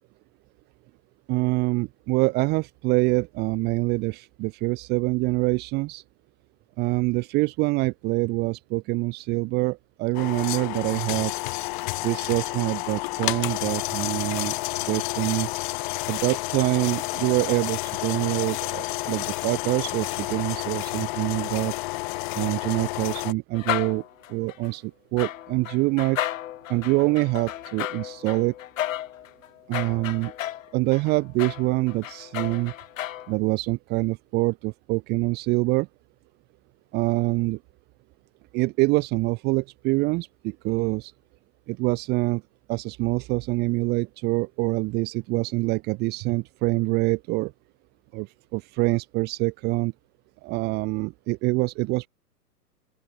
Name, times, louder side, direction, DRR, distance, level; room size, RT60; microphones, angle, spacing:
voice 1, 1.3-6.0 6.8-11.3 12.0-14.5 14.8-15.5 16.1-21.7 22.3-24.0 24.3-26.2 26.7-28.5 29.7-30.3 30.7-32.7 33.3-35.9 36.9-37.6 38.5-41.1 41.7-42.4 42.7-47.5 48.1-49.9 50.4-52.1, right 24 dB, 20° right, 1.0 m, -25 dB
sound 1, 10.1-23.3, left 24 dB, 30° left, 1.1 m, -30 dB
sound 2, 23.5-24.7 25.2-33.3, left 12 dB, 50° left, 1.7 m, -33 dB
open air
figure-of-eight pair, 125°, 49 cm